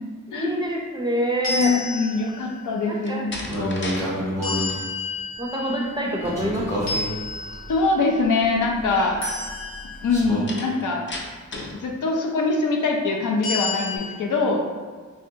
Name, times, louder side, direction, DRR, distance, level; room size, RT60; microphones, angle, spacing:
voice 1, 0.3-1.7 2.8-3.3 5.4-6.9, equal, 15° right, -2 dB, 0.4 m, -26 dB
sound 1, 1.4-2.6 4.4-6.5 6.9-8.1 9.2-10.3 13.4-14.0, left 3 dB, 60° left, 0.9 m, -31 dB
voice 2, 1.5-3.8 7.7-9.2 10.0-11.1 11.6-14.6, left 3 dB, 90° left, 1 dB, 0.5 m, -23 dB
Slam, 3.0-4.1 4.4-4.8 10.5-11.8, left 2 dB, 40° left, 0.5 m, -34 dB
sound 2, 3.5-4.7 6.2-10.4, equal, 10° left, 0.8 m, -30 dB
3.2 x 2.7 x 2.6 m, 1.5 s
wide cardioid pair, 130°, 30 cm